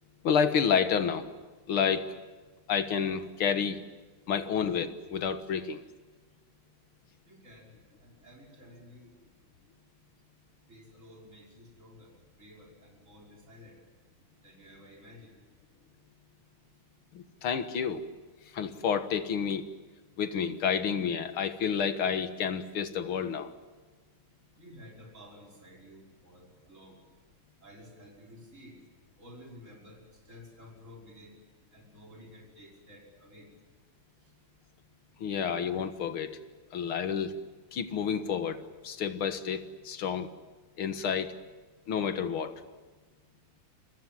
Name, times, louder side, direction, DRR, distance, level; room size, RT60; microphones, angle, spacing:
voice 1, 0.2-1.3 1.7-2.1 2.7-3.8 4.3-5.8 17.1-18.1 18.5-19.7 20.2-23.5 35.2-36.4 36.7-37.3 37.7-40.3 40.8-41.3 41.9-42.5, left 7 dB, 80° left, 9 dB, 2.3 m, -29 dB
voice 2, 7.2-7.7 8.0-9.1 10.7-12.1 12.4-13.8 14.4-15.3 24.6-27.0 27.6-28.7 29.2-30.0 30.3-31.3 31.7-33.5, left 1 dB, 35° right, -2 dB, 6.2 m, -52 dB
29.0 x 23.5 x 7.5 m, 1.3 s
omnidirectional pair, 2.3 m